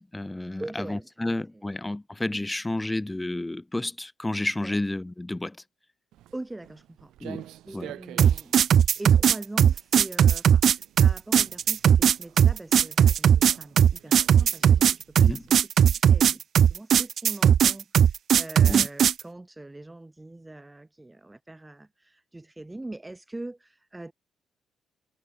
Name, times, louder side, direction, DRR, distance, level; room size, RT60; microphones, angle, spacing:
voice 1, 0.0-5.6 7.2-7.5 7.7-7.9 15.2-15.4 18.7-18.9, left 2 dB, 10° left, 1.1 m, -31 dB
voice 2, 0.6-1.7 4.6-4.8 6.3-8.7 9.0-24.1, right 2 dB, 15° right, 2.1 m, -42 dB
Walk footsteps, 6.1-15.6, right 14 dB, 85° right, 4.6 m, -49 dB
sound 1, 8.2-19.2, right 9 dB, 60° right, 0.3 m, -18 dB
cardioid pair, 90°, 0 cm